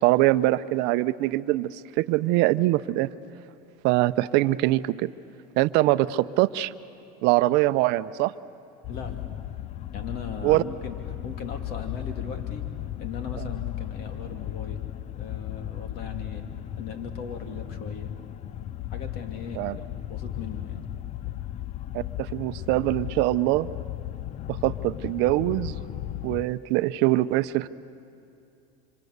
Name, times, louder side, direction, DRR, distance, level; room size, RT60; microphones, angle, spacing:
voice 1, 0.0-3.1 3.8-5.1 5.6-6.7 7.2-8.3 10.4-10.6 19.6-19.8 21.9-23.7 24.5-25.8 26.2-27.7, right 17 dB, 60° right, 14 dB, 0.7 m, -23 dB
sound 1, 8.8-26.5, left 13 dB, 35° left, 0.5 m, -36 dB
voice 2, 8.9-9.3 9.9-11.0 11.2-14.9 15.1-16.5 16.8-18.1 18.9-20.9, left 5 dB, 55° left, 4 dB, 2.9 m, -38 dB
26.5 x 26.0 x 8.1 m, 2.6 s
supercardioid pair, 120°, 19 cm